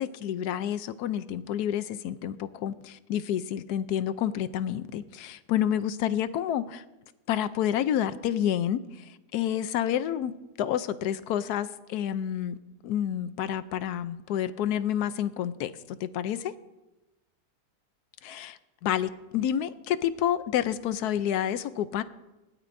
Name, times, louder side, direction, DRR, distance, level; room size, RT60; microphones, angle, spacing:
voice 1, 0.0-6.8 7.3-12.6 12.8-16.5 18.2-22.0, left 10 dB, 85° left, 13 dB, 1.1 m, -29 dB
20.0 x 12.0 x 2.6 m, 1.0 s
omnidirectional pair, 1.6 m